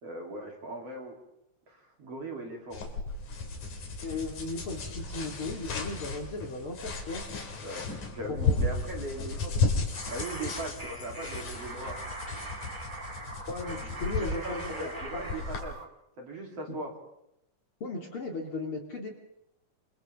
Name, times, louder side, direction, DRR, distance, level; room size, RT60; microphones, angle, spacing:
voice 1, 0.0-1.1 1.7-2.8 7.6-9.7 10.1-12.0 13.8-13.9 14.2-15.8 16.2-16.9, right 1 dB, 45° right, 0 dB, 4.2 m, -39 dB
sound 1, 2.7-15.6, left 3 dB, 65° left, 4.3 m, -34 dB
voice 2, 4.0-7.2 8.4-8.6 13.5-15.2 16.7-16.8 17.8-19.1, left 3 dB, 40° left, 1 dB, 3.0 m, -36 dB
sound 2, 9.9-15.8, right 2 dB, 20° right, 1.5 m, -42 dB
28.0 x 26.5 x 3.6 m, 0.83 s
omnidirectional pair, 3.9 m